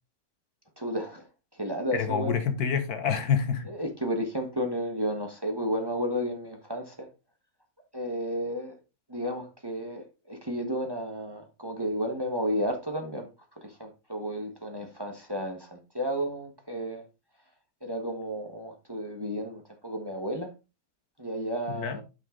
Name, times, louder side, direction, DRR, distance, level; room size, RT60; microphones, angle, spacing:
voice 1, 0.8-1.3 1.5-2.3 3.7-7.1 7.9-8.7 9.1-13.3 13.5-17.0 17.8-20.5 21.2-22.0, equal, 15° right, 1.2 m, -32 dB
voice 2, 1.9-3.7 21.7-22.0, left 7 dB, 75° left, 1.7 m, -27 dB
8.0 x 5.8 x 3.8 m
omnidirectional pair, 1.6 m